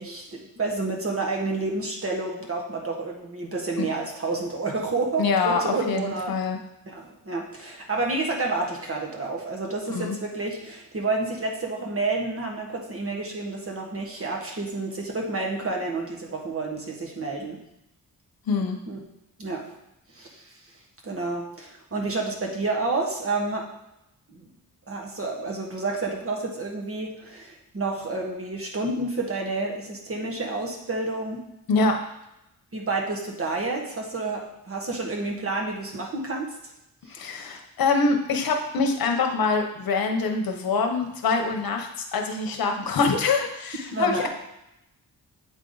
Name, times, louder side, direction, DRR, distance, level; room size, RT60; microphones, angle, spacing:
voice 1, 0.0-6.3 6.9-17.6 18.9-19.0 19.4-19.8 20.1-20.6 21.0-23.7 24.3-24.4 24.9-31.4 32.7-36.5 37.1-37.2 43.9-44.3, right 3 dB, 40° right, 0 dB, 1.4 m, -29 dB
voice 2, 5.2-6.6 9.9-10.2 18.5-18.8 31.7-32.0 37.1-44.3, left 4 dB, 75° left, 4 dB, 0.9 m, -25 dB
8.2 x 3.7 x 3.9 m, 0.85 s
cardioid pair, 90°, 35 cm